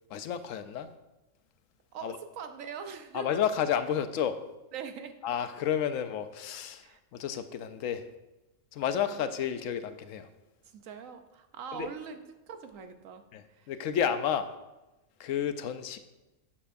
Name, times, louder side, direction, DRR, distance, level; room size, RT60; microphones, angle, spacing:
voice 1, 0.1-0.9 2.0-2.1 3.1-4.4 5.2-6.8 7.1-8.0 8.7-10.3 11.7-11.9 13.3-13.4 13.7-14.5 15.2-16.0, left 8 dB, 85° left, 11 dB, 1.0 m, -31 dB
voice 2, 1.9-3.3 4.7-5.2 6.8-7.0 9.1-9.2 10.6-13.7, right 6 dB, 90° right, 7 dB, 1.1 m, -42 dB
11.0 x 7.5 x 2.6 m, 1.0 s
omnidirectional pair, 1.3 m